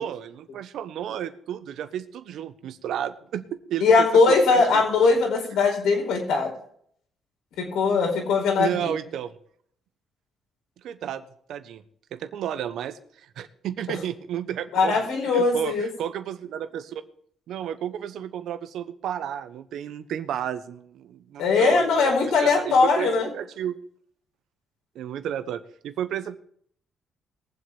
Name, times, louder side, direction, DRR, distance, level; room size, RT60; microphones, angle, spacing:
voice 1, 0.0-4.8 8.6-9.3 10.8-11.2 11.5-11.8 12.1-13.0 13.4-15.0 15.3-17.0 17.5-23.8 24.9-26.3, right 10 dB, 75° right, 11 dB, 1.1 m, -32 dB
voice 2, 3.8-6.5 7.6-8.9 14.7-15.9 21.4-23.3, left 4 dB, 85° left, 2 dB, 4.5 m, -20 dB
21.5 x 7.9 x 3.5 m, 0.64 s
cardioid pair, 90°, 0 cm